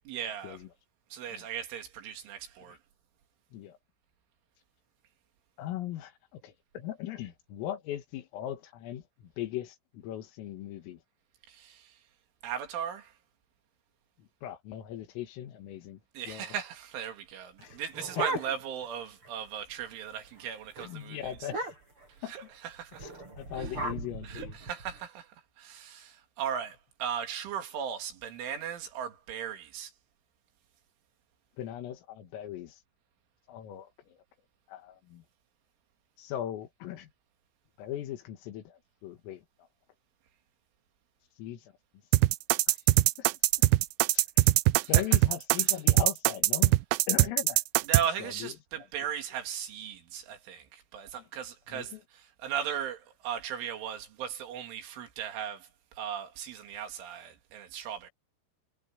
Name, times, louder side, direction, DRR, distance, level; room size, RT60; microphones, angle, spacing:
voice 1, 0.1-0.6 1.1-2.8 11.5-12.0 12.4-13.1 16.1-21.5 22.3-23.1 23.5-23.7 24.2-29.9 44.8-44.9 45.6-45.7 47.9-58.1, right 8 dB, 70° right, 4.8 m, -37 dB
voice 2, 5.6-11.0 14.2-16.0 16.3-16.5 17.6-17.8 18.2-18.3 20.8-21.7 22.2-22.3 23.0-23.1 23.4-24.6 31.6-32.8 33.5-34.2 34.7-35.2 36.2-37.1 37.8-39.4 41.4-41.7 42.7-42.8 43.2-43.3 43.6-43.7 44.1-44.5 44.9-46.7 47.1-47.6 48.2-48.9 51.7-52.0, left 11 dB, 85° left, 4.6 m, -39 dB
sound 1, 17.6-18.9 19.2-19.3 19.6-19.9 20.2-20.4 20.8-20.9 21.4-22.1 22.9-25.0, right 2 dB, 25° right, 8.6 m, -37 dB
sound 2, 42.1-48.0, right 19 dB, 90° right, 2.4 m, -21 dB
omnidirectional pair, 5.8 m